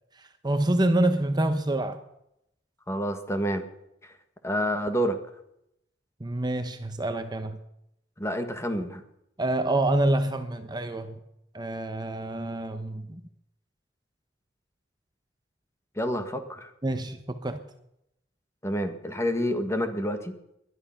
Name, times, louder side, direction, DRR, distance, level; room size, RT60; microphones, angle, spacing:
voice 1, 0.4-2.0 6.2-7.6 9.4-11.2 11.5-13.2 16.8-17.6, right 1 dB, 25° right, 8 dB, 0.9 m, -27 dB
voice 2, 2.9-3.7 4.4-5.2 8.2-9.0 16.0-16.7 18.6-20.3, equal, 15° left, 7 dB, 1.6 m, -28 dB
21.0 x 11.5 x 5.8 m, 0.81 s
head